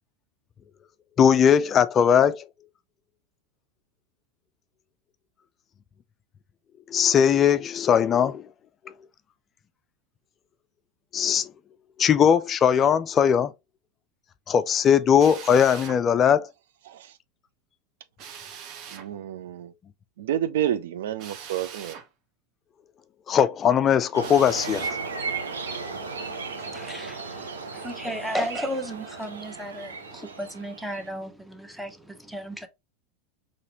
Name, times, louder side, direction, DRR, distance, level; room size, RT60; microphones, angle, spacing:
voice 1, 1.2-2.5 6.9-8.3 11.1-11.5 12.0-13.5 14.5-16.5 23.3-24.9, left 8 dB, 30° left, 0.3 m, -19 dB
Drill, 15.2-16.0 18.2-19.1 21.2-22.1 24.2-25.0, right 7 dB, 50° right, 0.9 m, -41 dB
voice 2, 16.9-17.2 18.9-19.7 20.2-22.0, right 11 dB, 70° right, 0.5 m, -29 dB
sound 1, 24.1-31.1, right 4 dB, 90° right, 0.8 m, -35 dB
voice 3, 25.9-32.7, equal, ahead, 0.8 m, -35 dB
4.1 x 3.0 x 2.8 m
hypercardioid pair, 95°, 0 cm